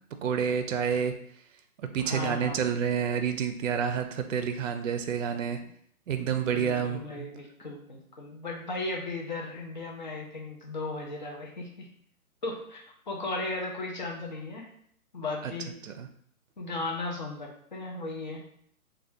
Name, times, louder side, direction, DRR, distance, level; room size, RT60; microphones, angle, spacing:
voice 1, 0.2-1.1 1.8-5.6 6.1-7.3 15.4-15.5 15.8-16.1, right 7 dB, 60° right, 7 dB, 0.5 m, -29 dB
voice 2, 2.0-2.7 6.1-11.9 12.4-14.7 15.1-15.7 16.6-18.4, left 2 dB, 35° left, 0 dB, 0.5 m, -36 dB
3.3 x 2.3 x 2.6 m, 0.66 s
hypercardioid pair, 145°, 43 cm